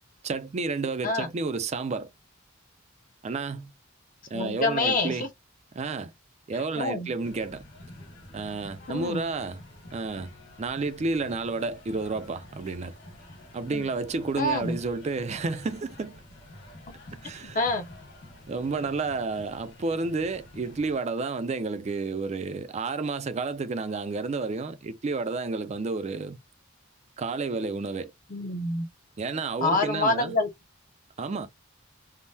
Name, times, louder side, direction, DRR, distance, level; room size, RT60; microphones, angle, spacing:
voice 1, 0.2-2.1 3.2-3.7 4.3-5.2 5.7-6.1 6.5-7.6 8.3-9.6 9.9-10.3 10.6-12.9 13.5-16.2 17.1-17.6 18.5-26.4 27.2-28.1 29.2-30.3 31.2-31.5, right 3 dB, 35° right, 0.4 m, -31 dB
voice 2, 4.3-5.2 6.8-7.1 8.9-9.2 13.7-13.9 14.4-14.8 17.5-17.9 28.3-28.9 29.6-30.5, left 2 dB, 45° left, 0.6 m, -26 dB
sound 1, 7.2-21.0, left 1 dB, 60° left, 1.5 m, -48 dB
3.5 x 2.1 x 2.6 m
head